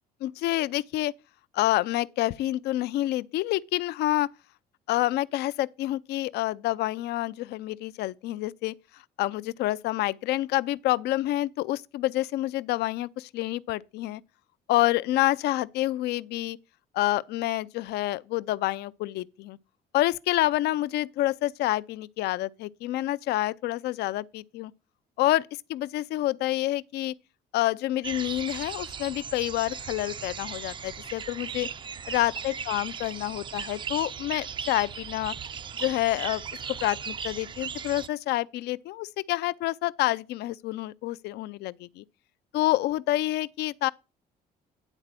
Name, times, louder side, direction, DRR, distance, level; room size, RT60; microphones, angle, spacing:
voice 1, 0.2-1.1 1.5-4.3 4.9-8.7 9.2-14.2 14.7-16.6 16.9-19.6 19.9-24.7 25.2-27.1 27.5-31.7 32.1-35.3 35.8-36.4 36.7-42.0 42.5-43.9, left 16 dB, 75° left, 0.4 m, -28 dB
sound 1, 28.0-38.1, right 6 dB, 30° right, 0.4 m, -37 dB
9.9 x 4.1 x 7.4 m
cardioid pair, 110°, 17 cm